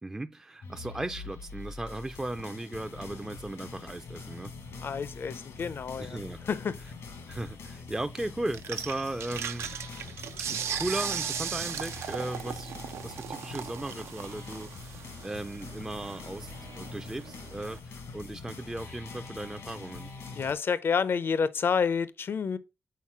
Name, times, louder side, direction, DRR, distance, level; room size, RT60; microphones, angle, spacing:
voice 1, 0.0-4.6 6.0-6.4 7.3-9.7 10.5-20.1, right 2 dB, 15° right, 0.4 m, -37 dB
sound 1, 0.6-20.5, left 4 dB, 85° left, 1.4 m, -44 dB
voice 2, 4.8-6.2 6.5-6.8 20.4-22.6, left 6 dB, 55° left, 0.5 m, -29 dB
sound 2, 8.5-17.8, right 8 dB, 80° right, 0.4 m, -38 dB
5.7 x 4.1 x 4.7 m
cardioid pair, 60°, 4 cm